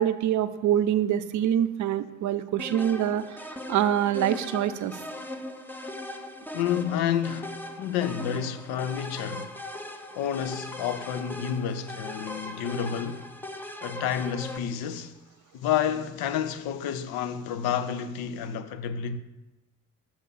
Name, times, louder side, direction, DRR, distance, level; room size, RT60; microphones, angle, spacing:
voice 1, 0.0-3.2 3.7-5.0, right 10 dB, 45° right, 0.5 m, -25 dB
sound 1, 2.6-14.6, left 1 dB, 5° left, 0.7 m, -39 dB
voice 2, 6.5-9.5 10.1-13.3 13.8-15.2 15.5-19.2, left 9 dB, 60° left, 0.6 m, -30 dB
6.6 x 4.3 x 5.7 m
figure-of-eight pair, 40°, 43 cm